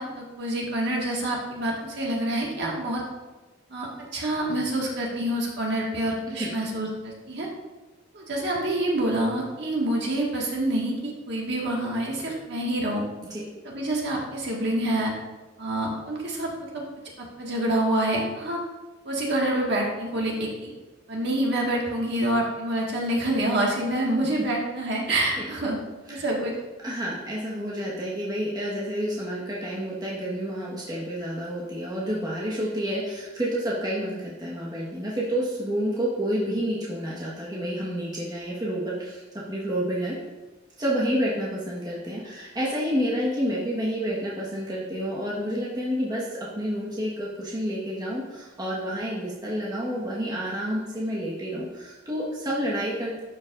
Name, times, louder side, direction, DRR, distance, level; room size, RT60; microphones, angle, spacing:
voice 1, 0.0-3.0 3.7-7.5 8.1-10.9 11.3-13.0 13.6-15.1 15.6-16.8 17.4-18.6 19.0-20.7 21.1-25.8 26.1-26.5, right 1 dB, 60° right, -2 dB, 1.6 m, -27 dB
voice 2, 26.8-39.2 39.5-40.2 40.8-53.2, equal, 20° right, -7 dB, 1.3 m, -29 dB
11.5 x 5.3 x 2.5 m, 1.2 s
head